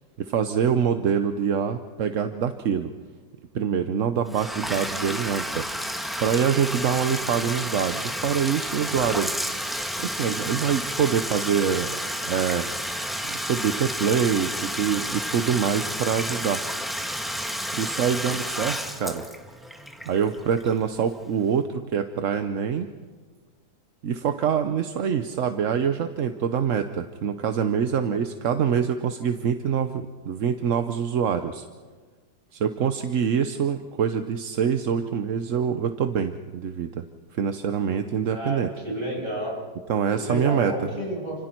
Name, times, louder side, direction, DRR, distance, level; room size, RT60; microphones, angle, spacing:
voice 1, 0.2-2.9 3.5-9.3 10.0-12.7 13.3-16.6 17.7-19.2 20.1-22.9 24.0-31.7 32.5-37.0 37.3-38.7 39.9-40.7, right 7 dB, 55° right, 8 dB, 1.0 m, -25 dB
Bathtub (filling or washing), 4.3-21.0, equal, ahead, 1.4 m, -31 dB
voice 2, 38.3-39.5 40.2-41.3, right 1 dB, 30° right, -3 dB, 7.9 m, -30 dB
29.5 x 26.0 x 4.5 m, 1.4 s
omnidirectional pair, 1.8 m